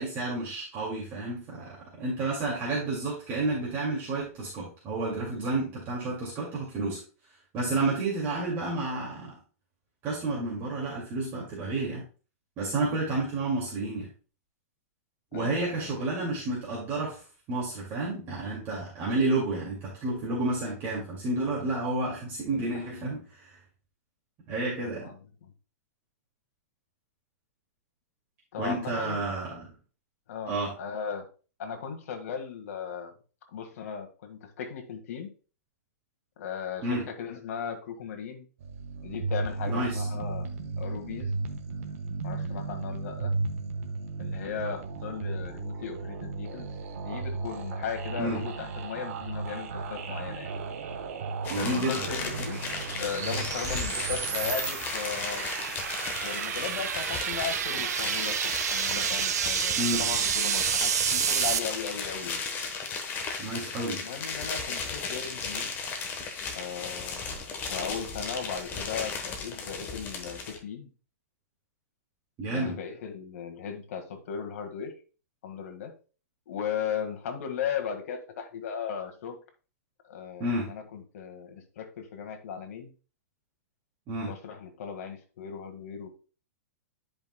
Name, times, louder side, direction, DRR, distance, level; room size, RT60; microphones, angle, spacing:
voice 1, 0.0-7.0 7.5-9.4 10.0-12.0 12.6-14.1 15.3-17.2 17.5-23.6 24.5-25.1 28.6-29.7 30.5-30.7 36.8-37.1 39.7-40.0 48.2-48.4 51.5-52.1 59.8-60.0 63.4-64.0 72.4-72.8 80.4-80.7 84.1-84.3, right 2 dB, 25° right, -5 dB, 2.2 m, -30 dB
voice 2, 15.3-15.9 24.8-25.5 28.5-29.3 30.3-31.3 31.6-33.1 33.5-35.3 36.4-38.4 39.0-40.5 40.8-41.3 42.2-43.3 44.2-46.7 47.0-50.5 51.6-52.6 53.0-55.4 56.2-62.4 64.0-65.7 66.5-67.3 67.7-70.9 72.5-74.9 75.4-75.9 76.5-79.4 80.0-82.9 84.2-86.1, left 7 dB, 65° left, 4 dB, 1.6 m, -37 dB
sound 1, 38.6-54.5, right 3 dB, 60° right, 1.2 m, -35 dB
sound 2, 50.0-61.6, right 8 dB, 80° right, 0.7 m, -31 dB
sound 3, 51.4-70.6, left 4 dB, 20° left, 1.1 m, -36 dB
10.5 x 5.3 x 2.2 m, 0.36 s
hypercardioid pair, 155°, 9 cm